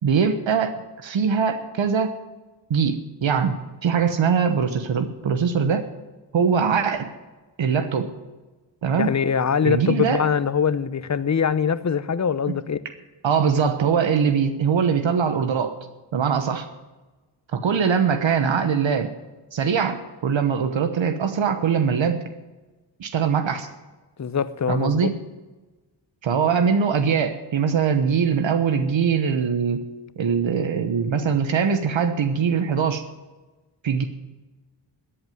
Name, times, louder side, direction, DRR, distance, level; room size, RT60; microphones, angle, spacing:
voice 1, 0.0-2.2 2.7-3.5 3.8-5.9 6.3-7.1 7.6-8.1 8.8-9.1 9.6-10.2 12.5-12.6 13.2-15.8 16.1-16.7 17.5-19.1 19.5-22.2 23.0-23.7 24.7-25.2 26.2-29.9 30.2-33.0 33.8-34.0, right 6 dB, 75° right, 1.2 m, -22 dB
voice 2, 9.0-12.8 24.2-25.1, left 6 dB, 35° left, 0.8 m, -23 dB
13.5 x 8.0 x 9.3 m
cardioid pair, 70°, 46 cm